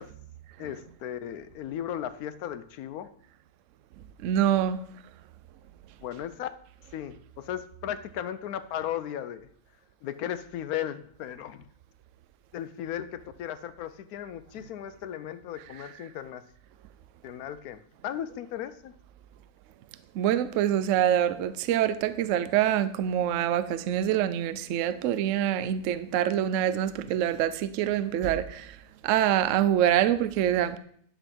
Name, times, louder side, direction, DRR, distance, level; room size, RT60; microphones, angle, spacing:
voice 1, 0.6-3.1 6.0-6.5 6.9-9.5 10.0-11.7 12.5-16.4 17.2-18.9, left 10 dB, 80° left, 1.0 m, -36 dB
voice 2, 4.2-4.8 20.1-28.8 29.0-30.8, right 11 dB, 65° right, 0.8 m, -25 dB
10.5 x 3.8 x 6.2 m
omnidirectional pair, 1.6 m